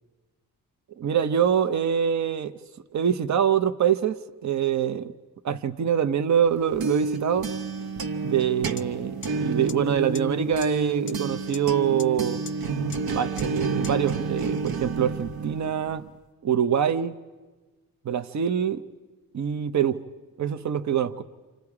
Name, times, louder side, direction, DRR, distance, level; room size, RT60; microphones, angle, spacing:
voice 1, 1.0-2.6 2.9-5.1 5.4-7.5 8.2-9.1 9.4-12.4 13.1-16.1 16.4-17.2 18.0-18.8 19.3-20.0 20.4-21.2, right 8 dB, 50° right, 0.7 m, -24 dB
sound 1, 6.5-16.1, right 3 dB, 75° right, 1.0 m, -30 dB
sound 2, 8.8-8.9 9.2-9.3 9.7-9.8 10.1-10.2 10.6-10.7 11.1-11.2 11.5-11.6 12.0-12.1 12.5-12.6 12.9-13.0 13.4-13.5 13.8-13.9, left 6 dB, 35° left, 0.7 m, -38 dB
29.5 x 27.0 x 4.8 m
wide cardioid pair, 140°, 36 cm